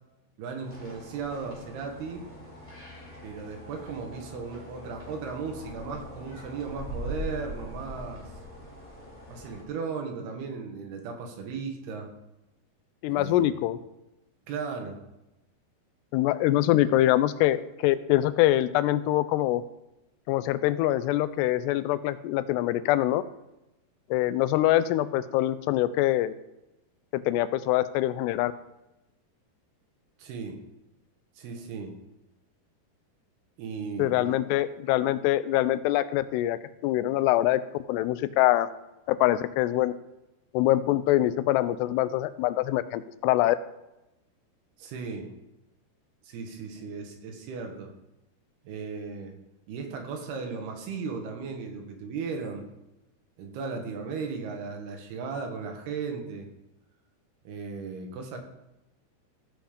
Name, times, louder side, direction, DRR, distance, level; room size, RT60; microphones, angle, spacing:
voice 1, 0.4-2.3 3.2-8.2 9.3-12.1 13.1-13.5 14.5-15.0 30.2-30.6 31.4-32.0 33.6-34.4 44.8-45.3 46.2-47.9 48.6-49.4 49.7-52.6 53.4-56.5 57.4-58.4, right 5 dB, 75° right, 3 dB, 3.2 m, -36 dB
sound 1, 0.6-9.6, equal, 5° left, 2.8 m, -42 dB
voice 2, 13.0-13.8 16.1-19.6 20.3-23.2 24.1-26.3 27.1-28.5 34.0-37.6 37.9-38.7 39.1-39.9 40.5-43.6, left 14 dB, 85° left, 14 dB, 2.7 m, -24 dB
15.5 x 5.2 x 5.1 m, 0.93 s
omnidirectional pair, 4.8 m